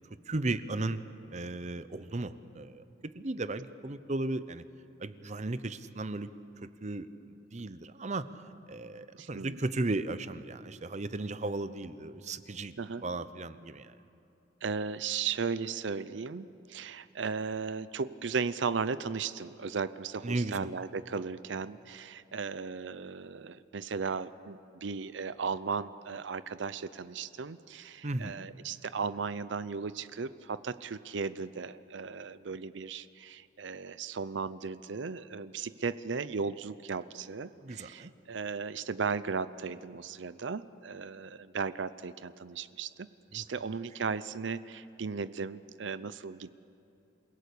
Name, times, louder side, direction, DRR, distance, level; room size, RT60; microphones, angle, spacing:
voice 1, 0.1-1.0 1.3-4.6 5.0-6.3 6.6-8.3 8.7-12.7 13.0-13.9 20.2-20.7 28.0-28.4 37.6-38.1 43.3-43.4, right 2 dB, 40° right, 13 dB, 0.8 m, -35 dB
voice 2, 9.1-9.6 12.8-13.0 14.6-46.5, right 5 dB, 70° right, 15 dB, 0.6 m, -36 dB
28.0 x 17.5 x 8.4 m, 2.9 s
head